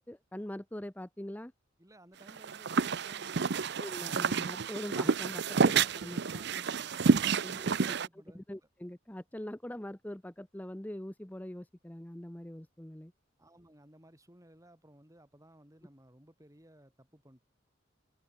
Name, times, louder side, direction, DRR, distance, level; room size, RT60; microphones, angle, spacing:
voice 1, 0.0-1.5 3.8-6.2 7.4-8.0 8.3-13.1, left 1 dB, 10° left, 0.7 m, -43 dB
voice 2, 1.8-3.8 5.4-8.4 13.4-17.4, right 1 dB, 15° right, 6.7 m, -59 dB
sound 1, 2.3-8.1, right 5 dB, 60° right, 0.7 m, -29 dB
head